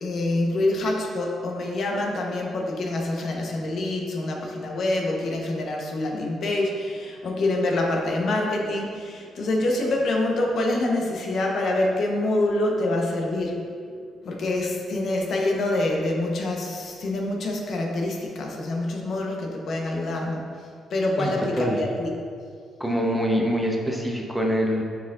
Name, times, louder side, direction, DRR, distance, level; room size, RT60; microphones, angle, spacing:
voice 1, 0.0-13.6 14.2-20.5 20.9-22.1, left 2 dB, 60° left, 0 dB, 1.0 m, -26 dB
voice 2, 21.2-21.8 22.8-24.8, equal, 5° right, -1 dB, 0.9 m, -25 dB
9.1 x 4.7 x 2.5 m, 2.2 s
cardioid pair, 90°, 0 cm